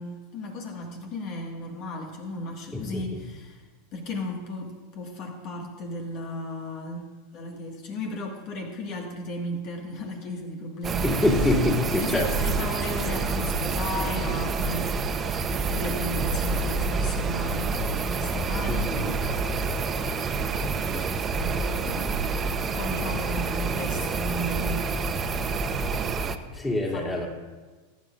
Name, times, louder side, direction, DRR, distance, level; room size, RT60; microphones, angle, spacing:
voice 1, 0.0-3.7 3.9-7.0 7.3-11.0 11.9-14.9 15.5-18.9 20.6-22.3 22.7-24.9 26.9-27.3, left 1 dB, 50° left, 1 dB, 1.9 m, -35 dB
voice 2, 2.7-3.0 11.0-12.6 18.7-19.2 26.5-27.3, left 2 dB, 15° left, 0 dB, 2.7 m, -26 dB
sound 1, 10.8-26.4, right 4 dB, 25° right, 1.0 m, -28 dB
23.0 x 10.0 x 2.6 m, 1.3 s
hypercardioid pair, 95°, 0 cm